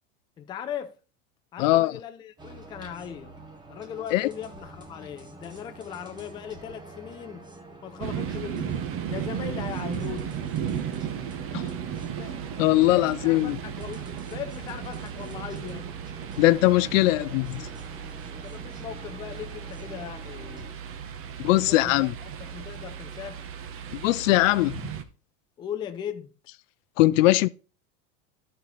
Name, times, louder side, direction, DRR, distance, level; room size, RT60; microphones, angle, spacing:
voice 1, 0.4-0.9 1.5-3.4 3.7-7.5 7.8-8.8 9.1-10.4 12.2-12.4 12.8-15.9 18.4-20.8 21.4-23.4 25.6-26.3, left 9 dB, 15° left, 0.3 m, -38 dB
voice 2, 1.6-2.0 4.1-4.3 11.5-11.6 12.6-13.6 16.4-17.7 21.4-22.1 23.9-24.9 27.0-27.5, left 17 dB, 75° left, 0.5 m, -21 dB
sound 1, 2.4-20.7, right 2 dB, 10° right, 0.9 m, -47 dB
sound 2, 8.0-25.0, right 8 dB, 35° right, 0.8 m, -35 dB
11.5 x 4.3 x 4.0 m
supercardioid pair, 125°, 39 cm